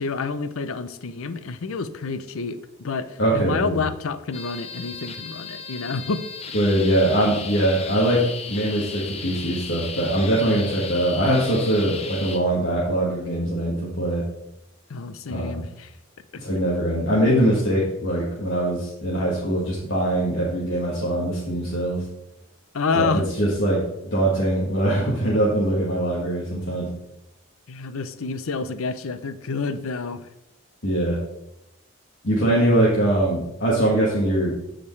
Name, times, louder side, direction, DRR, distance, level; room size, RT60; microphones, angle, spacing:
voice 1, 0.0-6.2 14.9-15.9 16.3-16.4 22.7-23.3 27.7-30.3, left 4 dB, 85° left, 12 dB, 0.6 m, -28 dB
voice 2, 3.2-3.8 6.5-14.2 15.3-15.6 16.3-22.0 23.0-23.9 24.1-26.9 30.8-31.2 32.2-34.6, right 1 dB, 60° left, -6 dB, 1.8 m, -22 dB
sound 1, 4.3-12.4, left 5 dB, 30° left, 0.6 m, -36 dB
14.0 x 5.1 x 3.2 m, 0.87 s
head